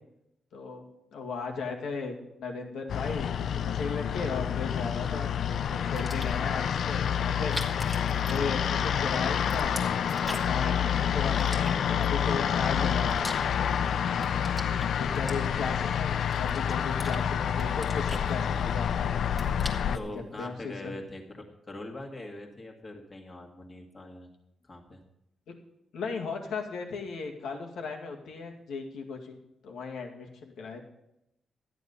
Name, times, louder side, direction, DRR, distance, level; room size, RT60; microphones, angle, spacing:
voice 1, 0.5-0.8 1.1-7.6 8.3-9.8 10.4-13.4 14.3-14.7 15.0-19.1 19.9-20.9 25.5-25.6 25.9-30.8, left 4 dB, 85° left, 1 dB, 2.1 m, -36 dB
sound 1, 2.9-20.0, left 8 dB, 60° left, 0.5 m, -28 dB
sound 2, 5.8-6.5 7.3-9.0 9.3-10.7 11.4-12.2 12.7-13.8 14.1-15.8 16.3-17.2 17.5-18.9 19.2-20.1, equal, 5° right, 1.6 m, -42 dB
voice 2, 19.9-24.3 24.6-25.0, left 1 dB, 25° left, 2 dB, 2.0 m, -42 dB
13.0 x 9.5 x 5.5 m, 0.84 s
wide cardioid pair, 160°, 0 cm